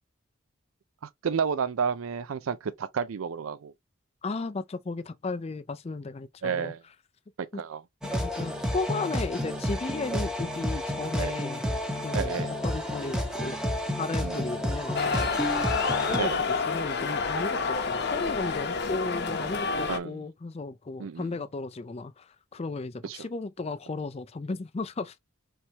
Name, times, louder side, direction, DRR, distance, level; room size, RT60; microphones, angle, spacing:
voice 1, 1.0-3.7 6.4-6.8 7.4-7.8 11.2-11.4 12.1-12.5 14.2-14.4 16.2-16.4 19.9-20.2 21.0-21.3 23.0-23.2, right 6 dB, 80° right, 0.4 m, -31 dB
voice 2, 4.2-6.7 7.5-7.6 8.2-11.6 12.0-13.6 13.9-15.6 16.1-16.3 16.7-25.2, left 3 dB, 30° left, 0.4 m, -35 dB
sound 1, 8.0-16.2, equal, 5° right, 1.0 m, -30 dB
sound 2, 14.9-20.0, left 4 dB, 55° left, 0.8 m, -28 dB
4.4 x 3.4 x 2.8 m
head